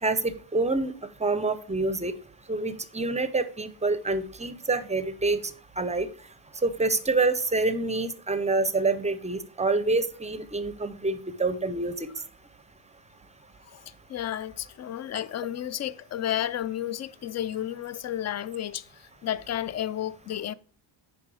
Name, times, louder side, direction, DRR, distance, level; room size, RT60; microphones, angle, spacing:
voice 1, 0.0-0.9 1.2-2.1 2.5-6.1 6.6-12.1, right 3 dB, 15° right, 0.5 m, -27 dB
voice 2, 14.1-20.5, left 11 dB, 35° left, 0.4 m, -32 dB
9.9 x 5.0 x 4.8 m
cardioid pair, 145°, 50 cm